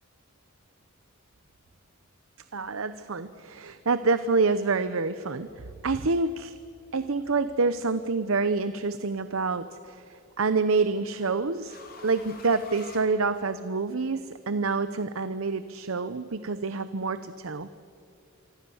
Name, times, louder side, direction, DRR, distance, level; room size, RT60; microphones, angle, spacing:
voice 1, 2.5-5.5 5.8-6.5 6.9-10.0 10.4-11.8 12.0-17.7, right 4 dB, 75° right, 12 dB, 0.8 m, -27 dB
sound 1, 8.1-8.5 9.9-13.9, left 4 dB, 45° left, 3.2 m, -50 dB
26.5 x 25.0 x 7.2 m, 2.5 s
head